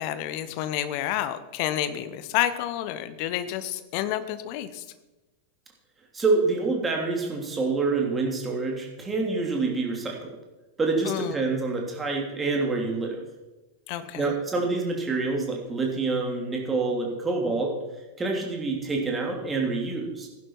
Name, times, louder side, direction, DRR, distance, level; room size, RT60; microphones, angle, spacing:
voice 1, 0.0-4.8 11.0-11.4 13.9-14.3, left 12 dB, 45° left, 13 dB, 0.9 m, -29 dB
voice 2, 6.1-10.3 10.8-13.2 14.1-17.7 18.2-20.3, right 3 dB, 15° right, 0 dB, 2.9 m, -27 dB
15.5 x 11.5 x 4.6 m, 1.1 s
figure-of-eight pair, 90°, 0 cm